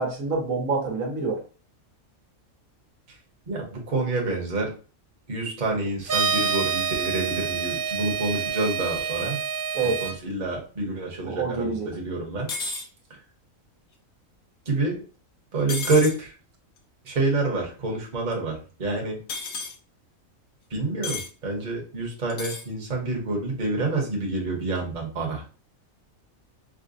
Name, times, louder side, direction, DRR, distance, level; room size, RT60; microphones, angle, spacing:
voice 1, 0.0-1.4 9.7-10.0 11.2-11.9, right 4 dB, 75° right, 0 dB, 1.2 m, -27 dB
voice 2, 3.5-4.7 5.3-9.4 9.8-12.5 14.7-15.0 15.5-16.3 17.0-19.2 20.7-25.4, right 2 dB, 35° right, -1 dB, 1.0 m, -27 dB
sound 1, 6.0-10.1, right 6 dB, 60° right, 0.6 m, -27 dB
sound 2, 12.5-12.9 15.7-16.2 19.3-19.7 21.0-21.3 22.3-22.7, left 4 dB, 60° left, 0.9 m, -32 dB
4.8 x 2.1 x 2.5 m, 0.37 s
omnidirectional pair, 1.4 m